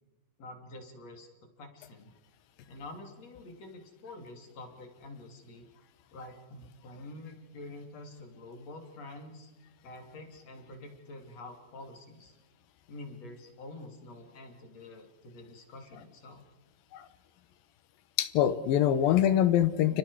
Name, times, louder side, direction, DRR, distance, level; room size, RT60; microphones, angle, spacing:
voice 1, 0.4-1.3 1.6-2.1 2.7-5.7 6.1-9.5 9.8-12.4 12.9-16.4, left 2 dB, 45° left, 4 dB, 3.7 m, -47 dB
voice 2, 18.2-20.0, left 10 dB, 75° left, 13 dB, 2.7 m, -24 dB
29.5 x 29.0 x 4.8 m, 1.1 s
omnidirectional pair, 4.3 m